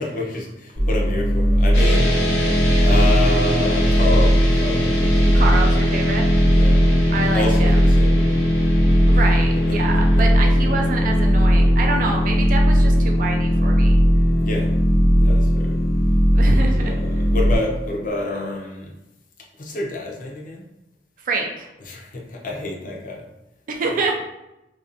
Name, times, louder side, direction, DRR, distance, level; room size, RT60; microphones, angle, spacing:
voice 1, 0.0-2.4 2.8-5.4 6.5-7.1 7.3-8.3 9.7-9.8 14.4-14.7 15.2-15.8 16.5-18.9 19.6-20.6 21.9-23.2, left 2 dB, 50° left, 0 dB, 0.5 m, -28 dB
sound 1, 0.8-17.6, equal, 80° right, 0.8 m, -18 dB
sound 2, 1.7-18.1, left 1 dB, 75° left, 0.8 m, -23 dB
voice 2, 5.3-6.3 7.1-7.8 9.1-14.0 16.3-17.2 21.2-21.7 23.7-24.1, right 3 dB, 50° right, 2 dB, 0.4 m, -26 dB
2.5 x 2.2 x 2.4 m, 0.92 s
head